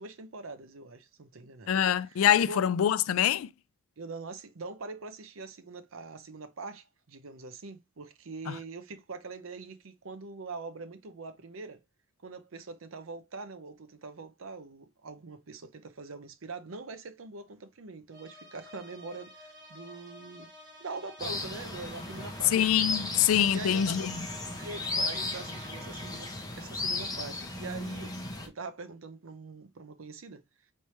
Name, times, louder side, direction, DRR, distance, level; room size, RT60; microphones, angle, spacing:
voice 1, 0.0-1.7 2.0-2.7 4.0-11.8 12.2-20.5 20.8-22.6 23.5-24.1 24.6-26.3 26.6-28.1 28.4-30.4, right 3 dB, 70° right, 0.7 m, -43 dB
voice 2, 1.7-3.5 8.5-8.6 22.5-24.1, left 10 dB, 80° left, 0.3 m, -25 dB
sound 1, 18.1-26.6, equal, 20° right, 1.7 m, -50 dB
sound 2, 21.2-28.5, left 2 dB, 20° left, 0.9 m, -35 dB
4.3 x 3.3 x 3.0 m
head